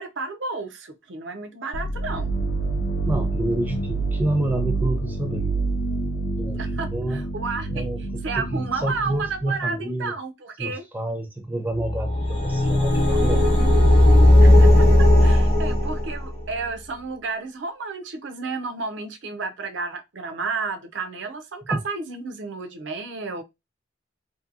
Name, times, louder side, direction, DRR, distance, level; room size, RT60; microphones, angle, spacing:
voice 1, 0.0-2.3 6.6-7.9 8.2-10.8 14.4-23.4, right 4 dB, 90° right, 0.5 m, -32 dB
sound 1, 1.7-9.5, right 3 dB, 55° left, 0.4 m, -28 dB
voice 2, 3.1-5.6 6.4-7.3 7.7-10.2 10.6-13.7 21.7-21.8, right 1 dB, 10° right, 0.4 m, -28 dB
sound 2, 11.8-16.4, left 1 dB, 30° left, 0.7 m, -16 dB
2.7 x 2.6 x 2.6 m
head